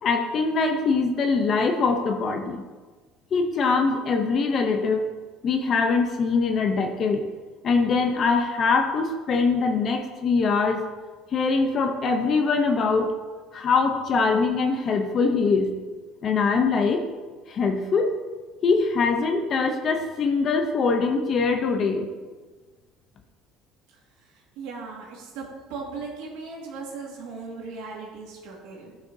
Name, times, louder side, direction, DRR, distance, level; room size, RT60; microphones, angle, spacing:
voice 1, 0.0-2.6 3.3-5.1 5.4-7.2 7.6-10.8 11.3-13.1 13.5-15.7 16.2-17.0 17.5-18.1 18.6-22.1, left 4 dB, 35° left, 5 dB, 0.7 m, -23 dB
voice 2, 24.3-25.4 25.7-29.0, right 4 dB, 80° right, -2 dB, 2.0 m, -38 dB
13.5 x 5.7 x 2.8 m, 1.3 s
cardioid pair, 155°, 0 cm